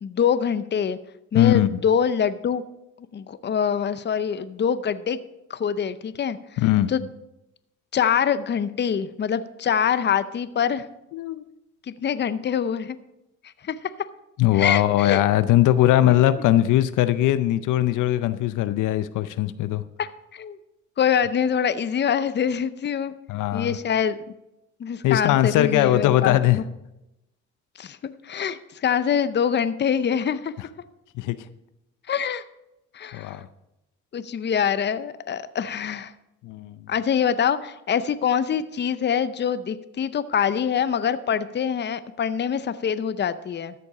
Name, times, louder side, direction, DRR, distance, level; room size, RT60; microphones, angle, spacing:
voice 1, 0.0-1.0 1.3-2.6 3.1-5.2 5.5-6.4 6.9-7.1 7.9-10.9 11.9-13.0 13.6-13.8 14.5-15.2 20.0-20.6 21.0-23.1 23.5-24.2 24.8-26.6 27.8-30.5 32.1-32.4 32.9-33.4 34.1-36.1 36.9-43.7, left 8 dB, 35° left, 14 dB, 0.6 m, -24 dB
voice 2, 1.3-1.8 6.6-6.9 11.1-11.4 14.4-19.8 23.3-23.7 25.0-26.6 31.2-31.4 33.1-33.4 36.4-36.8, left 13 dB, 85° left, 13 dB, 0.6 m, -20 dB
13.0 x 6.9 x 4.9 m, 0.90 s
cardioid pair, 90°, 30 cm